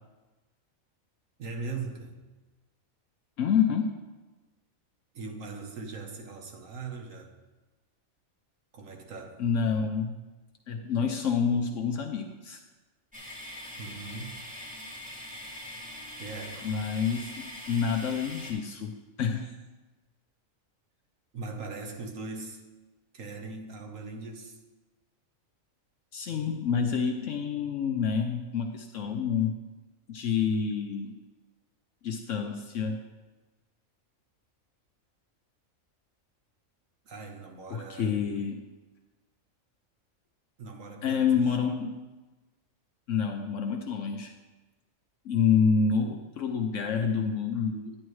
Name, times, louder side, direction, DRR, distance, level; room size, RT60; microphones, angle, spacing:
voice 1, 1.4-2.2 5.1-7.3 8.7-9.4 13.8-14.4 16.2-16.7 21.3-22.6 23.1-24.6 37.0-38.4 40.6-41.6, right 3 dB, 70° right, 3 dB, 1.4 m, -40 dB
voice 2, 3.4-4.0 9.4-10.2 10.7-12.6 16.6-19.5 26.1-29.6 30.1-31.2 32.0-33.1 37.7-38.7 41.0-42.0 43.1-44.3 45.2-48.0, left 6 dB, 70° left, 4 dB, 0.9 m, -28 dB
sound 1, 13.1-18.5, left 1 dB, 5° right, 2.0 m, -43 dB
10.0 x 9.7 x 3.1 m, 1.2 s
omnidirectional pair, 1.4 m